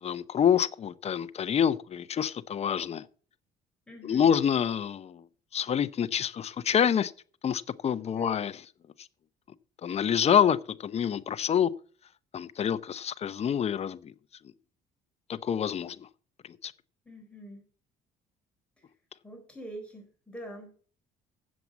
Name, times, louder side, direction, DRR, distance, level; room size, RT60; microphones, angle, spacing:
voice 1, 0.0-3.1 4.0-5.2 5.5-7.1 7.4-8.5 9.0-9.1 9.8-11.7 12.3-14.1 15.3-16.1 16.4-16.7, left 8 dB, 40° left, 0.7 m, -27 dB
voice 2, 3.9-4.3 8.1-8.4 17.1-17.6 18.8-18.9 19.2-20.7, right 1 dB, 5° left, 4.1 m, -45 dB
7.7 x 7.3 x 8.0 m
cardioid pair, 110°, 17 cm